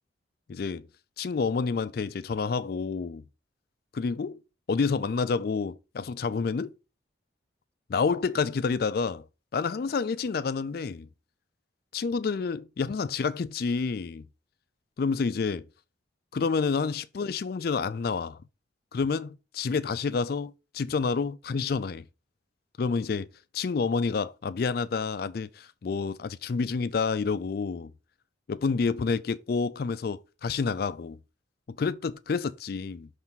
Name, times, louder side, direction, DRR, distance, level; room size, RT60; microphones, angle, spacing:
voice 1, 0.5-0.9 1.2-3.2 3.9-4.4 4.7-6.7 7.9-9.2 9.5-11.1 11.9-14.2 15.0-15.6 16.3-18.4 18.9-22.1 22.8-23.3 23.5-27.9 28.5-31.2 31.8-33.1, left 5 dB, 50° left, 0.3 m, -29 dB
5.9 x 3.3 x 5.4 m
head